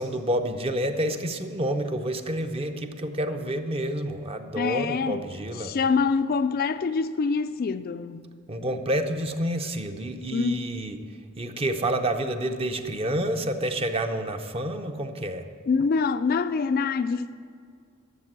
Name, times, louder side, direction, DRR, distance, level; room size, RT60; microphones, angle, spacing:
voice 1, 0.0-5.7 8.5-11.0 11.4-15.4, right 1 dB, 30° right, 0.7 m, -29 dB
voice 2, 4.5-5.2 5.6-8.3 10.3-10.7 15.7-17.3, left 5 dB, 45° left, 0.4 m, -25 dB
12.0 x 7.4 x 7.5 m
head